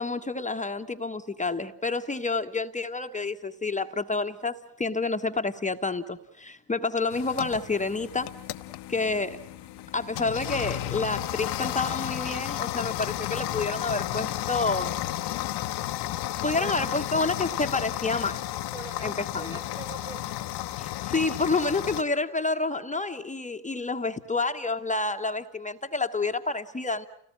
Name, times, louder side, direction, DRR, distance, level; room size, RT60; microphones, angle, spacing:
voice 1, 0.0-8.3 8.9-9.4 9.9-14.9 16.4-18.4 19.0-19.6 20.8-27.1, left 3 dB, 15° left, 1.2 m, -29 dB
sound 1, 7.1-22.0, left 14 dB, 55° left, 1.1 m, -33 dB
voice 2, 9.4-10.0 16.6-17.0 18.7-20.4 20.9-21.0, right 5 dB, 75° right, 5.5 m, -44 dB
29.0 x 18.5 x 7.7 m
hypercardioid pair, 60°, 49 cm